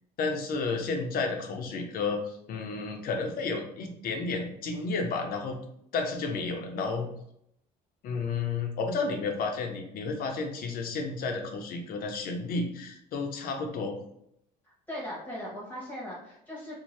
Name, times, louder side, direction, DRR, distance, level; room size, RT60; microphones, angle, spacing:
voice 1, 0.2-5.6 5.9-7.1 8.0-14.0, left 4 dB, 60° left, 3 dB, 0.6 m, -32 dB
voice 2, 14.6-16.8, equal, 10° left, -6 dB, 1.0 m, -39 dB
2.6 x 2.2 x 3.2 m, 0.75 s
cardioid pair, 110°, 17 cm